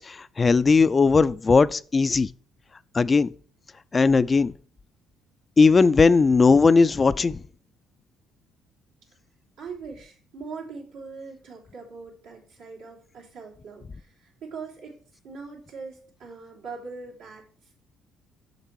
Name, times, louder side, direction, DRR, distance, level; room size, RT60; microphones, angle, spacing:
voice 1, 0.0-2.3 2.9-3.3 3.9-4.5 5.6-7.4, left 4 dB, 35° left, 0.4 m, -18 dB
voice 2, 9.6-15.0 15.2-17.7, right 4 dB, 80° right, 3.3 m, -41 dB
6.7 x 6.6 x 4.6 m
hypercardioid pair, 60°, 0 cm